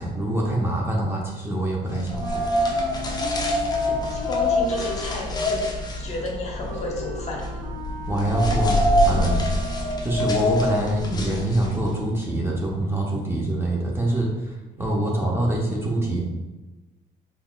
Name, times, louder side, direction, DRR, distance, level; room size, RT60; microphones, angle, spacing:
voice 1, 0.0-2.4 8.1-8.8 9.0-9.4 10.0-16.2, right 1 dB, 15° right, -3 dB, 0.7 m, -25 dB
sound 1, 2.0-11.9, left 1 dB, 25° left, 0.6 m, -25 dB
Wind instrument woodwind instrument, 2.2-10.3, right 1 dB, 60° right, 0.6 m, -38 dB
voice 2, 3.8-5.6 6.0-7.7 14.2-14.5 14.8-15.1, left 1 dB, 40° left, -1 dB, 1.0 m, -33 dB
3.9 x 3.5 x 2.3 m, 1.1 s
cardioid pair, 110°, 17 cm